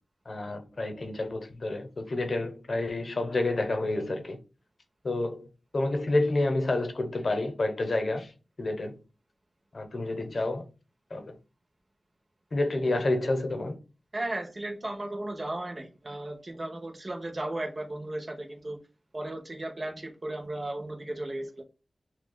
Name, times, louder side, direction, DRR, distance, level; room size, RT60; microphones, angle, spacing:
voice 1, 0.3-4.4 5.0-8.3 8.6-9.0 9.7-10.6 11.1-11.3 12.5-13.8, left 2 dB, 55° left, 0.8 m, -29 dB
voice 2, 14.1-18.8 19.1-21.6, right 1 dB, 35° right, 0.9 m, -35 dB
6.3 x 2.3 x 2.2 m
wide cardioid pair, 80°, 0 cm